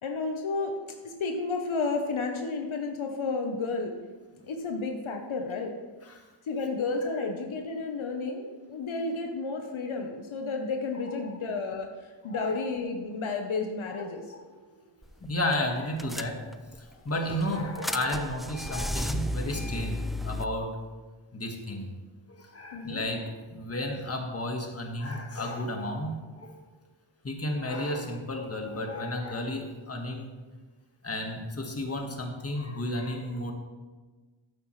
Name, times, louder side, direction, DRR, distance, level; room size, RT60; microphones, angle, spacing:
voice 1, 0.0-3.9 4.4-5.8 6.5-14.2 22.7-23.0, left 3 dB, 75° left, 4 dB, 1.1 m, -32 dB
voice 2, 12.2-12.7 13.9-14.4 15.2-16.4 16.7-20.8 21.3-21.9 22.3-26.6 27.2-30.3 31.0-33.5, left 1 dB, 30° left, 2 dB, 1.6 m, -33 dB
sound 1, 15.0-15.3 15.5-15.6 16.0-16.8 17.3-20.4, left 1 dB, ahead, 0.3 m, -33 dB
11.5 x 8.6 x 3.2 m, 1.3 s
wide cardioid pair, 90°, 49 cm